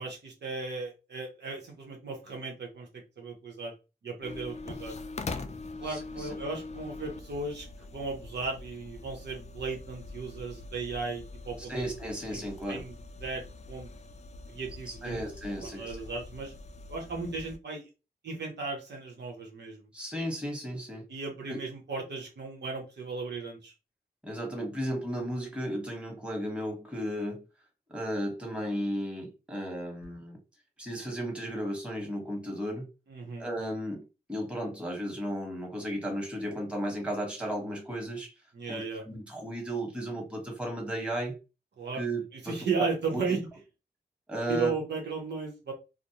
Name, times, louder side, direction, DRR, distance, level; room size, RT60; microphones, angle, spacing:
voice 1, 0.0-3.7 4.0-5.0 5.8-11.9 12.3-13.9 14.5-15.3 15.6-16.5 16.9-17.9 18.2-19.9 21.1-23.7 33.1-33.5 38.5-39.0 41.8-42.0 42.3-43.4 44.5-45.7, right 4 dB, 90° right, 1 dB, 0.8 m, -36 dB
sound 1, 4.2-17.6, left 3 dB, 40° left, 0.4 m, -43 dB
voice 2, 5.8-6.3 11.7-12.8 14.9-15.9 19.9-21.0 21.5-21.6 24.2-27.4 27.9-30.4 30.8-32.9 33.4-34.0 34.3-38.3 38.7-41.3 41.9-42.9 43.1-43.4 44.3-44.7, right 1 dB, 5° right, -1 dB, 1.2 m, -34 dB
2.4 x 2.0 x 2.9 m, 0.29 s
wide cardioid pair, 65°, 17 cm